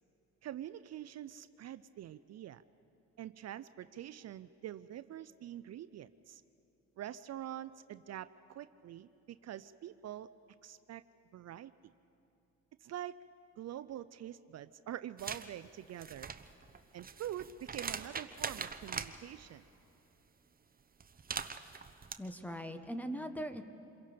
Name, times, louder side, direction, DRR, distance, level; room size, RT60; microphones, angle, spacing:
voice 1, 0.4-2.6 3.2-6.4 7.0-10.3 10.6-11.0 11.3-11.9 12.8-13.2 13.6-16.3 16.9-19.6, right 11 dB, 60° right, 14 dB, 0.5 m, -45 dB
sound 1, 15.2-15.5 15.9-19.1 21.0-22.1, right 5 dB, 30° right, 1.0 m, -41 dB
voice 2, 22.2-23.6, equal, 5° left, 8 dB, 1.3 m, -40 dB
27.5 x 22.5 x 5.1 m, 2.8 s
cardioid pair, 90°, 30 cm